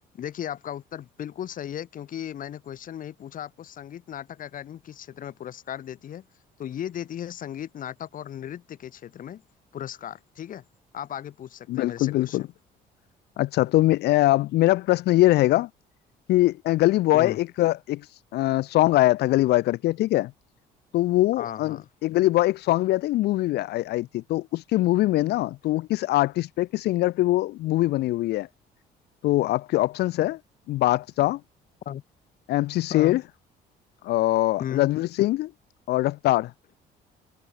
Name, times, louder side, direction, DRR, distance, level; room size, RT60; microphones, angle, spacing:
voice 1, 0.1-6.3 6.6-9.4 9.7-10.6 10.9-12.4 17.1-17.4 21.4-21.9 31.9-32.0 32.9-33.2 34.6-34.9, left 10 dB, 55° left, 2.4 m, -36 dB
voice 2, 11.7-12.5 13.4-15.7 16.3-18.0 18.3-20.3 20.9-28.5 29.2-30.4 30.7-31.4 32.5-33.2 34.0-35.5 35.9-36.5, left 16 dB, 75° left, 1.0 m, -22 dB
cardioid pair, 110°, 17 cm